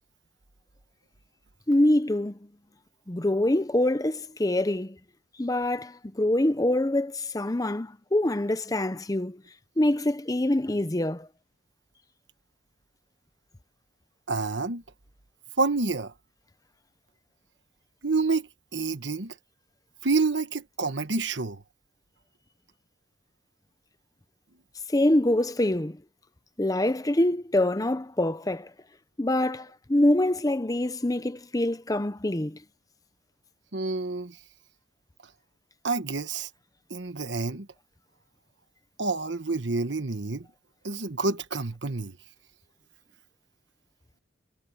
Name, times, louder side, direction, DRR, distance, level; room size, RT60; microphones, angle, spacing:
voice 1, 1.7-2.4 3.1-5.0 5.4-9.4 9.8-11.3 24.9-26.0 26.6-28.7 29.2-32.6, left 1 dB, 20° left, 0.7 m, -25 dB
voice 2, 14.3-14.8 15.6-16.1 18.0-19.3 20.0-21.6 33.7-34.4 35.8-36.5 36.9-37.7 39.0-40.5 40.8-42.2, right 3 dB, 70° right, 1.3 m, -28 dB
head